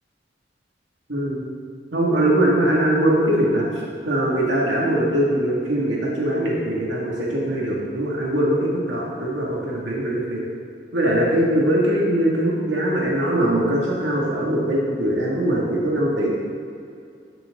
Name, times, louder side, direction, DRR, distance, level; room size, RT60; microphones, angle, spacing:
voice 1, 1.1-1.4 1.9-3.7 4.0-10.4 10.9-16.3, right 1 dB, 90° right, -4 dB, 2.4 m, -21 dB
14.0 x 7.9 x 4.0 m, 2.4 s
head